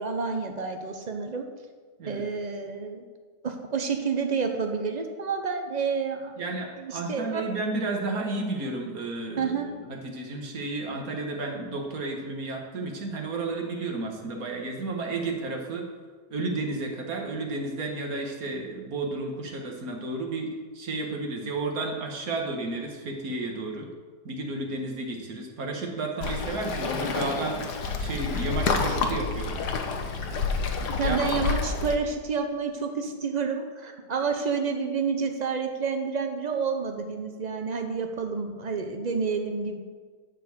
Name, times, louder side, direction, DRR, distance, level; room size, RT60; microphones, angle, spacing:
voice 1, 0.0-1.5 2.1-3.0 3.4-6.3 6.8-7.4 9.4-9.7 31.0-39.8, right 5 dB, 80° right, 5 dB, 0.3 m, -29 dB
voice 2, 6.4-15.9 16.3-23.9 24.2-29.7 31.0-31.2, right 2 dB, 55° right, 1 dB, 1.9 m, -32 dB
Waves surf, 26.2-32.0, left 4 dB, 70° left, 1.5 m, -28 dB
11.0 x 4.7 x 8.0 m, 1.5 s
omnidirectional pair, 1.9 m